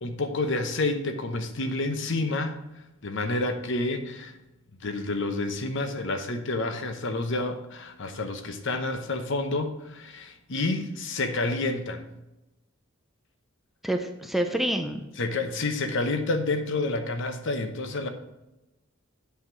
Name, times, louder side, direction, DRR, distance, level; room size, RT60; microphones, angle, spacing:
voice 1, 0.0-2.6 3.0-4.3 4.8-12.0 15.2-18.1, left 2 dB, 65° left, 8 dB, 0.9 m, -29 dB
voice 2, 13.8-15.1, right 1 dB, ahead, 5 dB, 0.6 m, -27 dB
8.5 x 5.9 x 4.5 m, 0.96 s
head